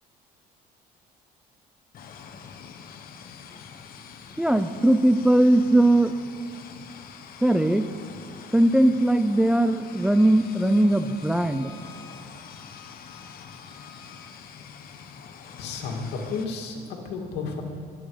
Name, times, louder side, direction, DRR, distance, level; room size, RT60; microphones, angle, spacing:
sound 1, 1.9-16.4, left 6 dB, 60° left, 1.3 m, -45 dB
voice 1, 4.4-6.2 7.4-7.8 8.5-11.7, right 1 dB, 5° right, 9 dB, 0.5 m, -20 dB
Bowed string instrument, 9.9-14.3, left 5 dB, 40° left, 2.9 m, -52 dB
voice 2, 15.6-17.6, left 4 dB, 85° left, 1 dB, 2.5 m, -32 dB
22.0 x 8.7 x 5.1 m, 2.3 s
cardioid pair, 110°, 17 cm